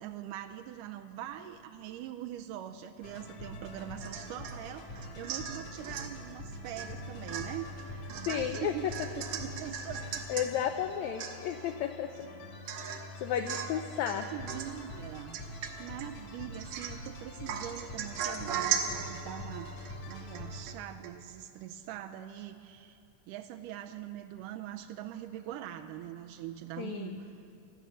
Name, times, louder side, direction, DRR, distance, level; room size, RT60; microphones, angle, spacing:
voice 1, 0.0-10.3 13.5-13.8 14.3-15.4 15.8-23.0 23.3-27.3, right 11 dB, 85° right, 6 dB, 2.1 m, -43 dB
sound 1, 3.0-20.7, left 1 dB, 65° left, 2.9 m, -45 dB
Domestic sounds home sounds / Chink clink / Drip, 4.0-4.6 5.0-6.1 6.8-7.0 7.3-10.5 10.9-11.0 11.2-11.7 12.1-12.2 12.7-13.1 13.5-13.8 14.1-14.8 15.3-16.1 16.5-17.1 17.5-20.8 21.0-21.1, right 8 dB, 70° right, 2.1 m, -38 dB
voice 2, 8.2-8.7 10.3-12.3 12.8-14.3 26.8-27.2, left 9 dB, 80° left, 6 dB, 1.7 m, -33 dB
18.0 x 12.5 x 6.3 m, 2.9 s
omnidirectional pair, 3.7 m